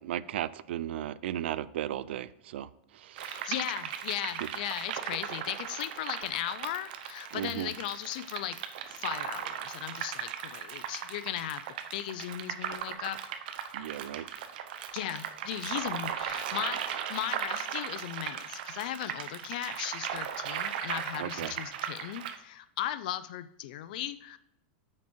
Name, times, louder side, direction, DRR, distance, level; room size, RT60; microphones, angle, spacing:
voice 1, 0.0-3.5 7.3-7.7 13.7-14.3 21.2-21.6, right 11 dB, 80° right, 17 dB, 0.4 m, -36 dB
voice 2, 3.2-8.6 8.9-11.6 11.9-13.2 14.9-24.4, left 12 dB, 50° left, 14 dB, 0.5 m, -37 dB
sound 1, 3.2-22.4, right 9 dB, 55° right, 0.8 m, -37 dB
8.8 x 5.8 x 4.5 m, 0.77 s
supercardioid pair, 180°, 6 cm